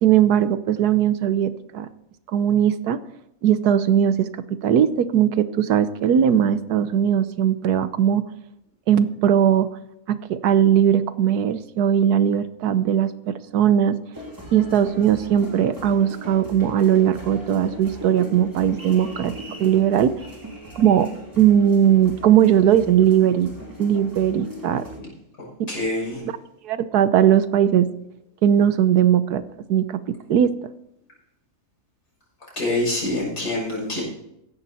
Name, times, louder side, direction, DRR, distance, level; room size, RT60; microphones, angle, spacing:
voice 1, 0.0-1.9 2.3-3.0 3.4-4.3 4.6-8.2 8.9-9.7 10.1-14.0 14.5-19.3 19.6-20.1 20.8-21.1 21.4-23.5 23.8-24.8 25.6-25.7 26.6-27.9 28.4-29.4 29.7-30.0 30.3-30.5, right 9 dB, 90° right, 13 dB, 1.4 m, -19 dB
sound 1, 14.1-25.0, equal, 10° right, 3.2 m, -38 dB
voice 2, 25.7-26.2 32.5-34.0, left 1 dB, 70° left, -4 dB, 6.7 m, -25 dB
15.5 x 10.5 x 4.2 m, 0.82 s
omnidirectional pair, 1.6 m